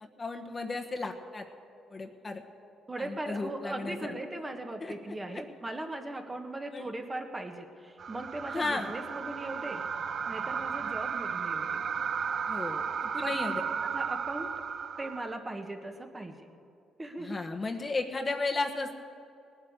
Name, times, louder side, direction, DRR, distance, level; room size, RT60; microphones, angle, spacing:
voice 1, 0.0-1.4 1.9-2.4 3.0-4.0 4.8-4.9 5.3-5.4 6.7-6.9 8.5-8.9 12.5-13.6 17.2-19.1, left 3 dB, 30° left, 4 dB, 1.2 m, -34 dB
voice 2, 2.9-9.9 10.3-11.8 13.2-13.6 13.9-14.5 15.0-16.5 17.0-17.4, right 2 dB, 20° right, 4 dB, 1.5 m, -39 dB
sound 1, 8.0-15.3, right 6 dB, 55° right, 0.6 m, -34 dB
18.5 x 8.8 x 8.0 m, 2.6 s
cardioid pair, 90°, 0 cm